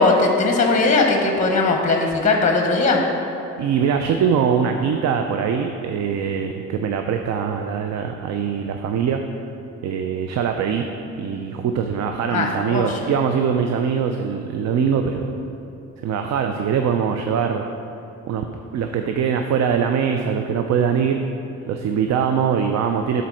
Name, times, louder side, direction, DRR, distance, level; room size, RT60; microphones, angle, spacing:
voice 1, 0.0-3.0 12.3-13.0, left 3 dB, 25° left, 2 dB, 0.9 m, -19 dB
voice 2, 3.6-9.2 9.8-10.9 11.2-15.3 16.0-17.7 18.3-18.4 18.7-21.2 21.7-23.2, right 7 dB, 65° right, 5 dB, 0.5 m, -22 dB
7.5 x 4.1 x 6.2 m, 2.9 s
cardioid pair, 90°, 30 cm